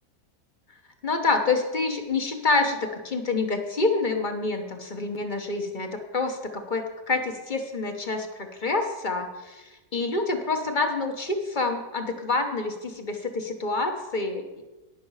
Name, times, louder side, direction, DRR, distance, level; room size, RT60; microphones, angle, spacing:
voice 1, 1.0-14.6, left 3 dB, 35° left, 5 dB, 1.1 m, -27 dB
18.0 x 6.0 x 4.8 m, 1.1 s
omnidirectional pair, 1.7 m